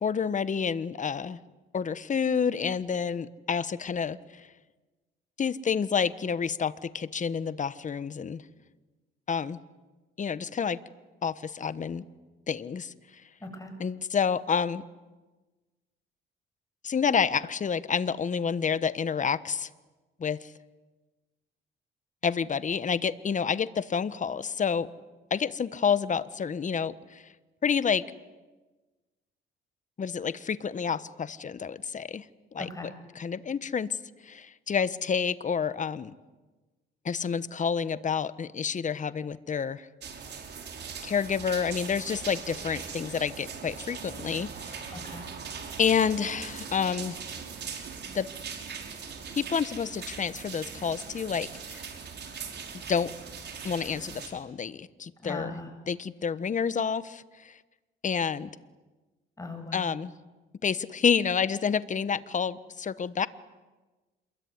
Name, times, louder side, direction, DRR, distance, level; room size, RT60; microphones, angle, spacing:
voice 1, 0.0-1.4 1.7-4.2 5.4-8.4 9.3-9.6 10.2-10.8 11.2-12.0 12.5-12.9 13.8-14.8 16.8-19.7 20.2-20.4 22.2-24.9 25.3-27.2 27.6-28.0 30.0-32.2 32.5-32.7 33.2-34.0 34.2-36.1 37.0-39.9 41.0-44.9 45.8-47.2 48.1-48.3 49.4-51.8 52.9-53.1 53.6-55.5 55.9-57.5 58.0-58.5 59.7-60.1 60.6-63.3, left 6 dB, 40° left, 15 dB, 1.2 m, -29 dB
voice 2, 13.4-13.7 32.6-32.9 44.9-45.3 55.2-55.7 59.4-59.9, left 2 dB, 15° left, 6 dB, 7.3 m, -39 dB
sound 1, 40.0-54.3, right 6 dB, 60° right, 5.4 m, -40 dB
27.5 x 22.0 x 9.7 m, 1.2 s
cardioid pair, 90°, 20 cm